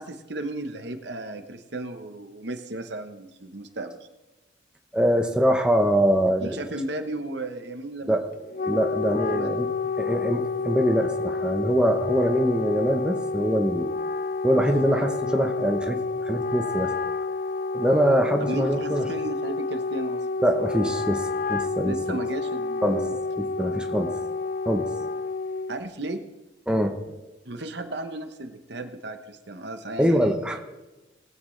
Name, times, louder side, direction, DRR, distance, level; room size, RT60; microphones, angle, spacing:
voice 1, 0.0-4.1 6.4-8.2 8.6-8.7 9.3-9.6 18.4-20.3 21.8-23.1 25.7-26.2 27.4-30.3, right 2 dB, 60° right, 8 dB, 1.0 m, -35 dB
voice 2, 4.9-6.6 8.1-8.2 8.7-9.7 10.0-13.9 14.4-16.9 17.7-19.0 20.4-22.2 22.8-23.0 23.4-24.1 24.7-24.9 26.7-26.9 30.0-30.6, equal, 5° right, 3 dB, 0.8 m, -23 dB
Wind instrument woodwind instrument, 8.3-25.8, left 3 dB, 45° left, 0.4 m, -29 dB
20.5 x 8.7 x 3.3 m, 1.1 s
head